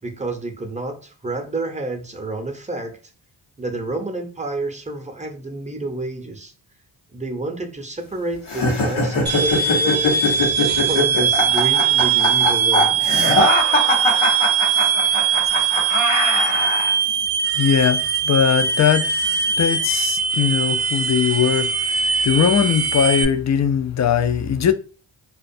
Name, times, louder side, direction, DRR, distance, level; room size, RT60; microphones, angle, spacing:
voice 1, 0.0-3.0 3.6-6.5 7.1-10.4 10.8-13.0, right 2 dB, 15° right, 0.6 m, -29 dB
sound 1, 8.5-16.9, left 2 dB, 90° left, 0.9 m, -21 dB
sound 2, 9.3-23.3, right 6 dB, 55° right, 0.6 m, -20 dB
voice 2, 17.5-19.1 19.6-24.7, left 8 dB, 40° left, 0.4 m, -20 dB
2.4 x 2.2 x 2.6 m
cardioid pair, 40°, 47 cm